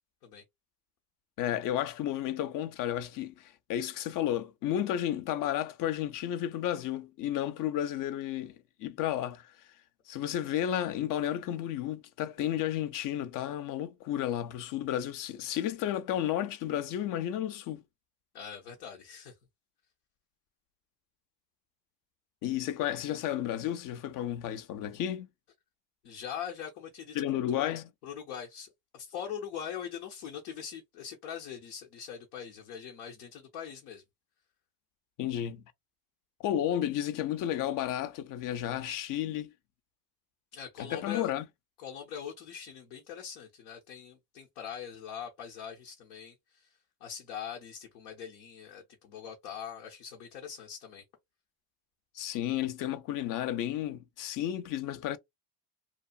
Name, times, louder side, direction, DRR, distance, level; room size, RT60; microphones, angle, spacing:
voice 1, 1.4-9.5 10.1-17.8 22.4-25.3 27.1-27.9 35.2-35.6 36.4-39.5 40.8-41.5 52.1-55.2, left 11 dB, 45° left, 0.5 m, -32 dB
voice 2, 18.3-19.3 26.0-27.2 27.5-27.8 28.0-34.0 40.5-41.3 41.8-46.7 47.0-51.0, left 8 dB, 80° left, 0.9 m, -42 dB
2.8 x 2.3 x 2.2 m
hypercardioid pair, 85°, 46 cm